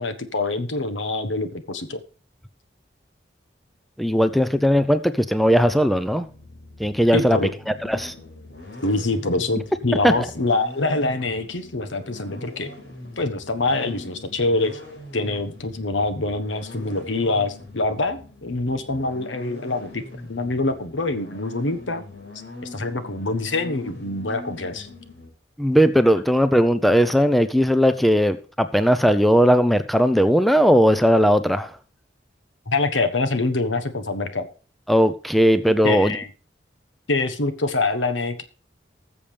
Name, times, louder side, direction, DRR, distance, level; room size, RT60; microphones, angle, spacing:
voice 1, 0.0-2.0 7.1-7.5 8.8-12.7 13.2-14.8 15.1-22.0 22.6-24.9 32.7-34.5 35.8-36.3 37.1-38.4, left 2 dB, 90° left, 10 dB, 1.3 m, -25 dB
voice 2, 4.0-6.3 6.8-7.4 7.7-8.1 10.0-10.1 25.6-31.8 34.9-36.2, equal, ahead, 11 dB, 0.5 m, -18 dB
sound 1, 5.4-25.3, left 2 dB, 70° left, 4.3 m, -42 dB
19.5 x 7.0 x 3.4 m, 0.38 s
head